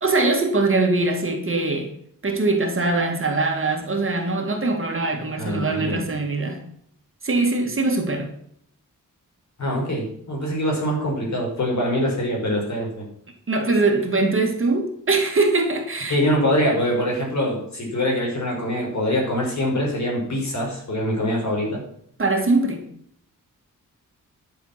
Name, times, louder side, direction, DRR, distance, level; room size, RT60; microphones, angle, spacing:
voice 1, 0.0-1.9 2.2-6.6 7.2-8.3 13.5-16.2 22.2-22.9, right 3 dB, 40° right, 2 dB, 2.4 m, -22 dB
voice 2, 5.4-6.0 9.6-13.1 16.1-21.8, equal, 55° left, -1 dB, 5.6 m, -24 dB
12.0 x 7.3 x 6.0 m, 0.67 s
wide cardioid pair, 150°, 33 cm